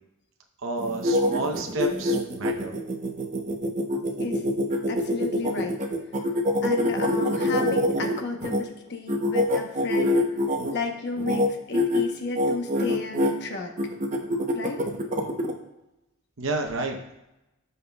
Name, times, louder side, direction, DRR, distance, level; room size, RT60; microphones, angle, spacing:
voice 1, 0.6-2.7 16.4-17.0, right 2 dB, 60° right, 2 dB, 0.8 m, -30 dB
sound 1, 0.8-8.6 9.1-10.7 11.2-11.5 11.7-12.0 12.3-13.3 13.8-15.5, left 1 dB, 35° right, 0.8 m, -25 dB
voice 2, 4.9-5.8 6.6-10.3 10.7-13.7 14.5-14.8, left 3 dB, 50° left, 3 dB, 0.9 m, -33 dB
15.0 x 5.5 x 2.3 m, 0.92 s
head